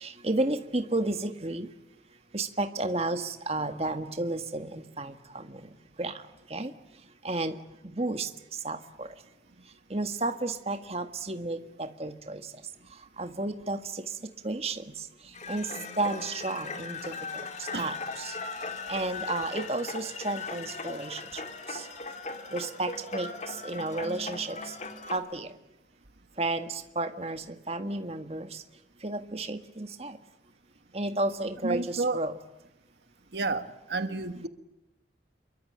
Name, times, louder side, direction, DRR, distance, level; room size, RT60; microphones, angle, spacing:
voice 1, 0.0-1.7 2.3-5.1 6.0-6.1 6.5-6.7 7.2-7.5 7.9-8.3 8.6-9.1 9.9-12.4 13.2-13.8 14.4-14.8 15.5-15.6 16.0-17.0 17.8-18.3 18.9-21.2 22.5-23.3 23.6-24.6 25.1-25.5 26.4-26.7 26.9-28.5 29.0-30.1 30.9-32.3, right 2 dB, 35° right, 7 dB, 1.7 m, -32 dB
sound 1, 15.3-25.2, left 3 dB, 40° left, 2.7 m, -38 dB
voice 2, 31.6-32.2 33.3-34.5, right 3 dB, 70° right, 10 dB, 1.3 m, -31 dB
28.0 x 23.0 x 8.9 m, 0.91 s
head